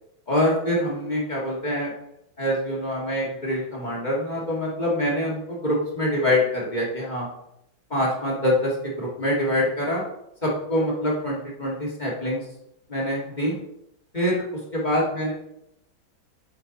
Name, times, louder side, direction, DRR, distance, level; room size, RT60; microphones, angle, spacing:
voice 1, 0.3-1.9 2.4-7.3 7.9-10.0 10.4-12.4 12.9-13.6 14.1-14.4 14.7-15.3, left 1 dB, 25° left, -3 dB, 1.7 m, -25 dB
7.8 x 5.6 x 3.9 m, 0.80 s
omnidirectional pair, 2.3 m